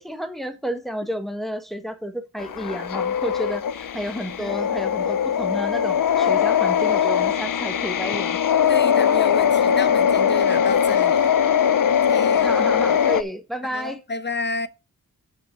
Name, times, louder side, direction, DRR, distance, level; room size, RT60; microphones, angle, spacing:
voice 1, 0.0-8.4 12.4-14.0, equal, ahead, 1.4 m, -31 dB
sound 1, 2.4-13.2, left 8 dB, 65° left, 0.6 m, -21 dB
voice 2, 8.6-11.3 12.1-12.5 13.7-14.7, left 4 dB, 30° left, 0.8 m, -30 dB
6.0 x 5.9 x 6.7 m
cardioid pair, 45°, 35 cm